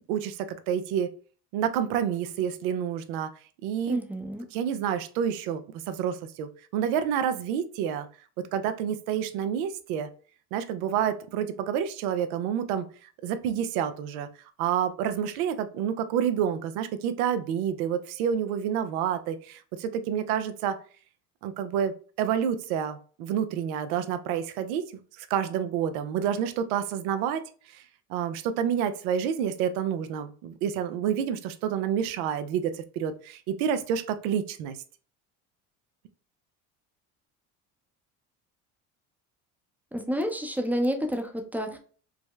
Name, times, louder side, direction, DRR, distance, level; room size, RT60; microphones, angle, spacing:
voice 1, 0.1-1.1 1.5-3.3 3.6-4.0 4.5-8.1 8.4-10.1 10.5-12.9 13.2-14.3 14.6-20.8 21.4-24.9 25.2-27.4 27.7-27.8 28.1-34.8, right 8 dB, 80° right, 10 dB, 0.6 m, -28 dB
voice 2, 3.9-4.5 39.9-41.8, equal, 5° right, 4 dB, 0.6 m, -29 dB
4.8 x 2.0 x 2.3 m, 0.41 s
supercardioid pair, 80°, 42 cm